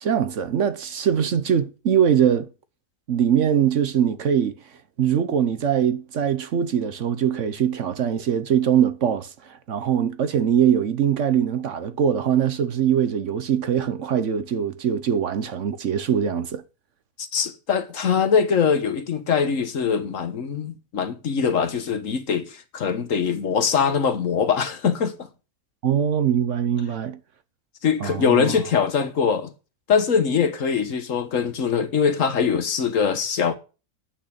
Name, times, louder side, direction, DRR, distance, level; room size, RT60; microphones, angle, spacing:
voice 1, 0.0-2.5 3.1-4.5 5.0-16.6 25.8-27.2 28.0-28.5, right 8 dB, 60° right, 1.1 m, -22 dB
voice 2, 17.2-25.3 27.8-29.5 29.9-33.6, left 6 dB, 60° left, 1.5 m, -22 dB
9.4 x 6.5 x 8.6 m
omnidirectional pair, 1.5 m